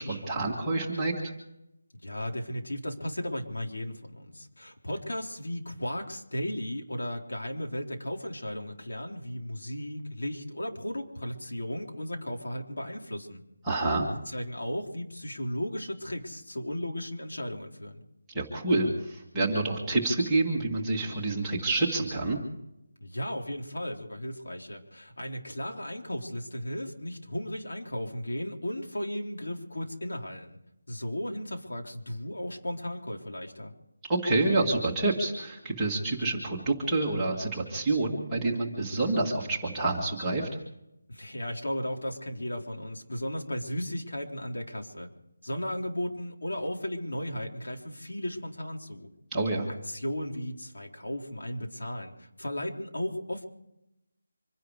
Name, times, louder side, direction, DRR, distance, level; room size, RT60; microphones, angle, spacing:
voice 1, 0.0-1.3 13.6-14.1 18.3-22.4 34.1-40.5 49.3-49.7, right 2 dB, 5° right, -7 dB, 1.7 m, -28 dB
voice 2, 2.0-13.4 14.3-18.0 23.0-30.6 30.9-33.7 41.1-45.1 45.4-49.1 49.9-53.4, left 1 dB, 85° left, 1 dB, 3.9 m, -35 dB
26.0 x 11.0 x 4.9 m, 0.85 s
figure-of-eight pair, 180°, 0 cm